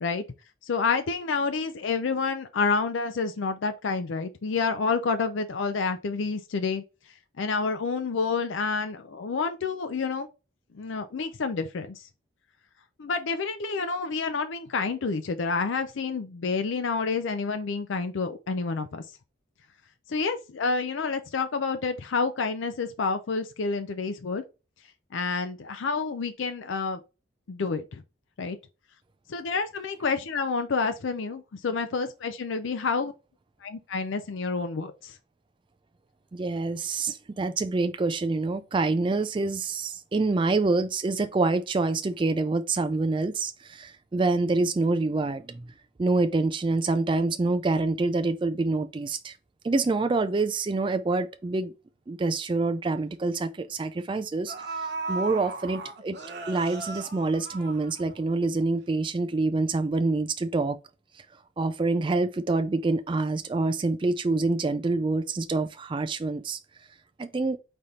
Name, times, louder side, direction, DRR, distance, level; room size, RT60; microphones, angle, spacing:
voice 1, 0.6-6.8 7.4-10.3 10.7-12.0 13.0-19.0 20.1-24.4 25.1-27.0 27.5-28.0 28.4-28.6 29.3-33.1 33.6-35.2, left 4 dB, 70° left, 0.5 m, -29 dB
voice 2, 36.3-45.7 46.0-49.3 49.6-51.7 52.1-56.2 56.5-60.8 61.6-66.6 67.2-67.6, right 3 dB, 25° right, 0.3 m, -26 dB
sound 1, 54.0-54.1 54.5-58.4 58.7-58.8, right 3 dB, 55° right, 0.9 m, -36 dB
4.2 x 3.3 x 3.7 m
head